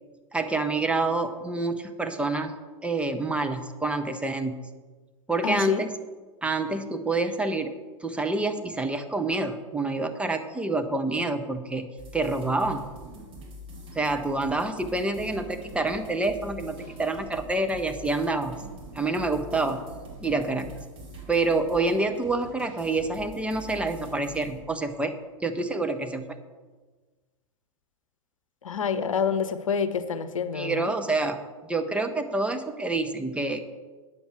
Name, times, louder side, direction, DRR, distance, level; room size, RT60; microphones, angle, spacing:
voice 1, 0.3-2.5 2.8-4.6 5.3-5.9 6.4-7.7 8.0-12.9 13.9-18.6 18.9-19.8 20.2-20.7 21.3-25.1 25.4-26.2 30.5-33.6, right 2 dB, 5° right, 6 dB, 0.8 m, -27 dB
voice 2, 5.4-5.9 28.6-30.9, left 6 dB, 75° left, 12 dB, 0.8 m, -28 dB
sound 1, 12.0-24.6, equal, 30° right, 3.0 m, -44 dB
9.3 x 7.1 x 6.0 m, 1.3 s
figure-of-eight pair, 95°, 17 cm